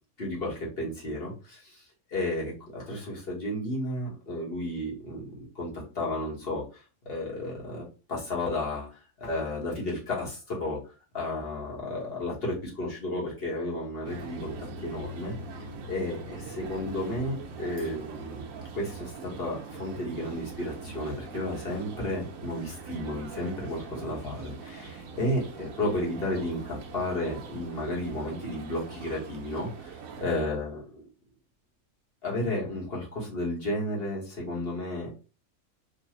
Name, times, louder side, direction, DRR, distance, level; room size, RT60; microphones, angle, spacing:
voice 1, 0.2-10.8 11.1-18.4 18.7-31.0 32.2-35.1, left 1 dB, 45° left, -4 dB, 1.7 m, -33 dB
sound 1, 14.1-30.3, right 4 dB, 80° right, 1.1 m, -42 dB
4.0 x 2.5 x 3.0 m, 0.34 s
omnidirectional pair, 1.4 m